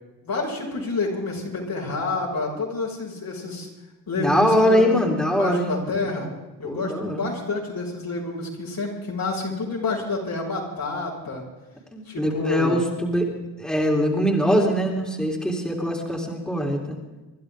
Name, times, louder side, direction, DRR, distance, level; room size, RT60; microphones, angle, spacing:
voice 1, 0.2-3.7 4.1-4.9 5.4-6.3 6.6-11.4 12.1-12.8, left 3 dB, 55° left, -3 dB, 6.4 m, -28 dB
voice 2, 4.1-5.7 6.0-6.1 6.6-7.3 11.9-13.3 13.6-17.0, equal, ahead, -2 dB, 4.4 m, -22 dB
27.0 x 11.5 x 3.8 m, 1.1 s
supercardioid pair, 60°, 42 cm